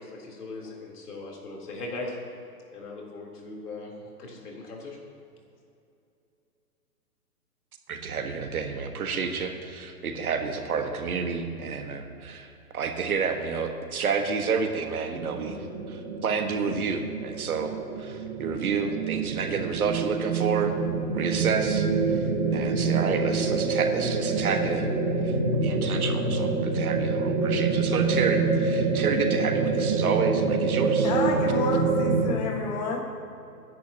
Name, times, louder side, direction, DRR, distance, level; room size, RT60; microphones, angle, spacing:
voice 1, 0.0-2.2 2.7-5.0, left 2 dB, 70° left, -2 dB, 3.7 m, -39 dB
voice 2, 7.9-12.5 12.7-15.6 15.9-17.7 18.0-20.7 21.1-21.9 22.5-24.9 25.2-31.1, right 5 dB, 65° right, 5 dB, 1.6 m, -30 dB
sound 1, 15.1-32.3, right 4 dB, 30° right, 1.5 m, -26 dB
voice 3, 31.0-33.0, left 4 dB, 25° left, 0 dB, 1.6 m, -30 dB
25.5 x 10.5 x 2.9 m, 2.7 s
hypercardioid pair, 165°, 47 cm